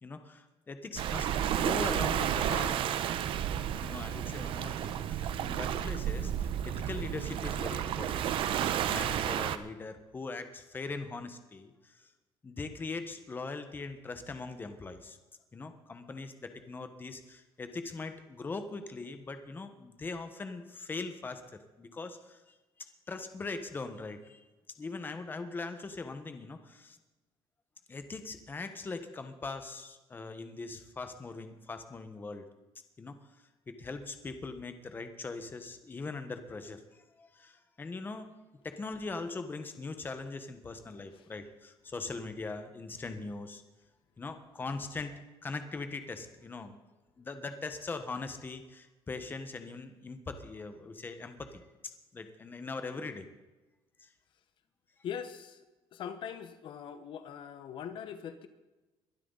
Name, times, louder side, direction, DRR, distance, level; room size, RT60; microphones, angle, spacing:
voice 1, 0.0-3.0 3.8-12.0 12.4-15.2 15.5-22.4 23.1-24.4 24.8-27.0 27.9-32.4 33.0-33.2 33.7-36.8 37.2-38.3 38.6-43.6 44.2-46.8 47.2-53.3 54.0-54.1, left 3 dB, 20° left, 8 dB, 1.2 m, -41 dB
Waves surf, 1.0-9.6, right 10 dB, 60° right, 0.9 m, -32 dB
voice 2, 55.0-55.6 55.9-58.5, left 8 dB, 55° left, 10 dB, 1.1 m, -41 dB
22.0 x 12.0 x 4.0 m, 1.1 s
cardioid pair, 150°, 10 cm